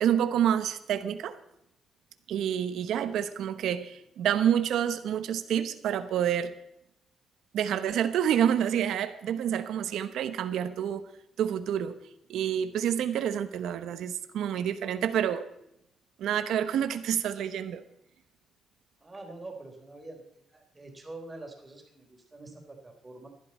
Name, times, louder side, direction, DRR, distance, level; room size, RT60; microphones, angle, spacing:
voice 1, 0.0-1.4 2.3-6.6 7.5-11.0 11.4-11.9 12.3-15.5 16.2-17.8, right 9 dB, 80° right, 11 dB, 1.0 m, -28 dB
voice 2, 19.0-20.2 20.5-23.3, right 2 dB, 20° right, 2 dB, 3.8 m, -45 dB
16.0 x 11.5 x 4.3 m, 0.79 s
cardioid pair, 115°, 0 cm